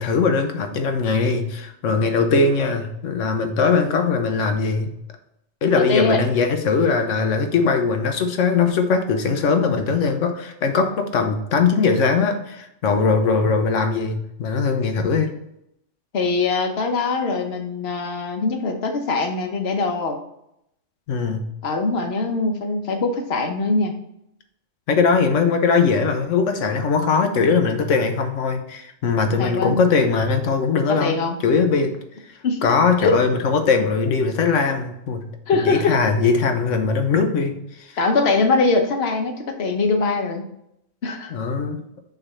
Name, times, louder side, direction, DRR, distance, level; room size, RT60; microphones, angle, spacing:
voice 1, 0.0-4.9 5.6-15.3 21.1-21.4 24.9-31.9 32.6-35.3 35.5-38.0 41.3-41.8, left 5 dB, 90° left, 6 dB, 1.2 m, -20 dB
voice 2, 5.7-6.2 16.1-20.2 21.6-23.9 29.4-29.8 30.9-31.4 32.4-32.6 33.0-33.2 35.5-36.0 38.0-40.5 41.0-41.3, left 3 dB, 60° left, 4 dB, 1.1 m, -22 dB
5.9 x 3.4 x 5.5 m, 0.77 s
omnidirectional pair, 1.3 m